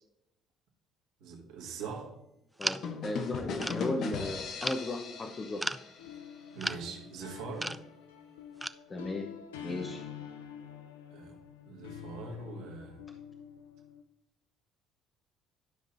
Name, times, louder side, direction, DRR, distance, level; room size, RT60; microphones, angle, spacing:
voice 1, 1.2-2.2 3.8-3.9 6.1-6.2 6.5-7.8 9.6-10.0 11.1-11.4 11.6-13.0, right 4 dB, 70° right, 0 dB, 1.7 m, -43 dB
voice 2, 2.6-5.6 8.9-9.3 9.6-10.0, left 2 dB, 35° left, 3 dB, 0.9 m, -36 dB
sound 1, 2.6-3.0 3.6-3.9 4.6-4.9 5.6-5.8 6.6-6.9 7.6-7.9 8.6-8.7, right 1 dB, 10° right, 0.4 m, -35 dB
sound 2, 2.8-6.6, left 5 dB, 60° left, 0.9 m, -38 dB
sound 3, 6.0-14.0, left 9 dB, 85° left, 0.5 m, -47 dB
12.0 x 5.3 x 2.7 m, 0.89 s
hypercardioid pair, 55°, 0 cm